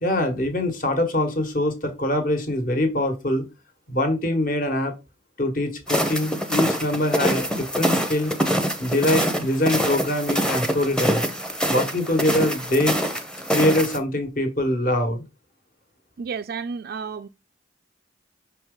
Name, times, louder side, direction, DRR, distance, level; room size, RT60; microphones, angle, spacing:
voice 1, 0.0-3.5 3.9-4.9 5.4-8.3 8.8-11.3 11.7-13.0 13.5-15.2, left 1 dB, 45° left, 1.4 m, -23 dB
sound 1, 5.9-14.0, equal, 5° left, 0.7 m, -25 dB
voice 2, 16.2-17.3, right 5 dB, 55° right, 0.3 m, -31 dB
6.0 x 4.4 x 3.8 m
head